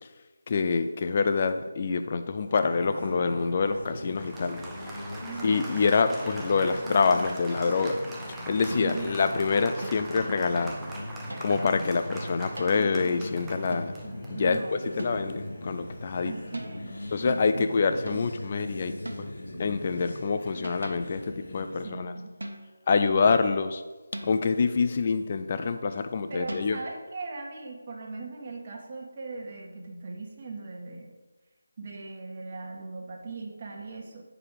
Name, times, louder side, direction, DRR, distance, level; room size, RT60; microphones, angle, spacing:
voice 1, 0.5-4.6 5.4-8.0 8.3-10.8 11.4-13.9 14.3-14.6 15.0-16.3 17.1-19.3 19.6-22.1 22.9-23.8 24.2-26.8, left 4 dB, 35° left, 9 dB, 0.5 m, -26 dB
sound 1, 2.5-22.0, left 1 dB, 60° left, 1.7 m, -40 dB
Applause, 2.5-16.8, right 2 dB, 10° right, 0.7 m, -43 dB
voice 2, 5.2-5.7 8.8-9.1 11.8-11.9 14.0-14.8 16.2-16.9 17.2-17.7 18.0-18.3 21.8-22.3 23.1-23.4 26.3-31.1 31.8-34.3, right 3 dB, 35° right, -1 dB, 1.4 m, -39 dB
sound 2, 8.7-9.1 9.8-10.2 11.3-11.7 12.6-12.8 13.7-14.0 15.0-15.5 16.5-16.9 18.1-18.4 19.0-19.4 20.3-21.2 22.4-22.9 24.1-24.7 26.5-26.7, right 1 dB, 75° right, 1.2 m, -41 dB
8.4 x 5.0 x 4.7 m, 1.2 s
figure-of-eight pair, 160°, 0 cm